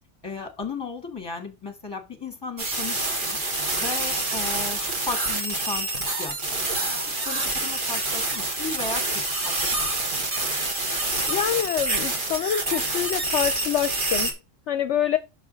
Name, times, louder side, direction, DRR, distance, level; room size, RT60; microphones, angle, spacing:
voice 1, 0.2-3.4 3.8-5.9 6.2-9.0 9.4-9.9, left 4 dB, 20° left, 1.6 m, -35 dB
sound 1, 2.6-14.3, right 2 dB, 45° right, 1.6 m, -27 dB
voice 2, 11.3-14.3 14.7-15.2, left 10 dB, 70° left, 0.9 m, -26 dB
6.1 x 4.7 x 5.1 m
omnidirectional pair, 1.3 m